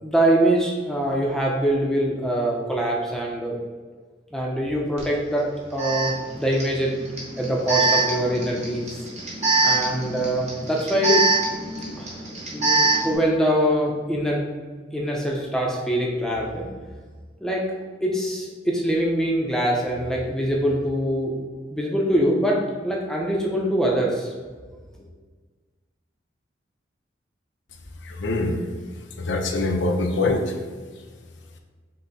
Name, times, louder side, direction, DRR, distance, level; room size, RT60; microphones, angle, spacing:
voice 1, 0.0-3.6 4.3-5.5 5.7-6.9 7.4-9.1 9.6-11.2 12.0-12.2 12.5-14.4 14.9-16.7 17.4-17.6 18.0-21.3 21.7-24.3, right 1 dB, 5° left, -2 dB, 0.5 m, -23 dB
Alarm, 5.0-5.1 5.8-13.2, right 3 dB, 35° right, 1.0 m, -24 dB
voice 2, 28.0-28.6 29.2-30.6, left 2 dB, 85° left, 4 dB, 0.5 m, -24 dB
5.4 x 2.0 x 4.0 m, 1.5 s
head